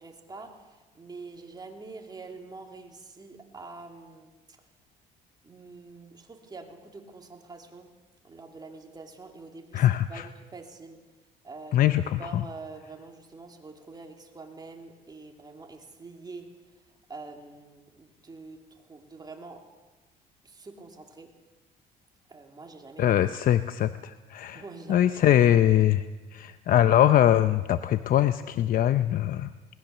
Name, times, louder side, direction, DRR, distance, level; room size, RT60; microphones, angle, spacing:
voice 1, 0.0-4.3 5.4-7.9 8.2-11.0 11.4-11.9 12.2-16.5 17.1-19.6 20.4-21.3 22.3-23.2 24.5-25.2, right 3 dB, 25° right, 3 dB, 2.8 m, -45 dB
voice 2, 9.7-10.3 11.7-12.4 23.0-24.6 24.9-29.5, left 11 dB, 55° left, 11 dB, 0.7 m, -22 dB
21.5 x 19.5 x 6.8 m, 1.2 s
cardioid pair, 110°, 17 cm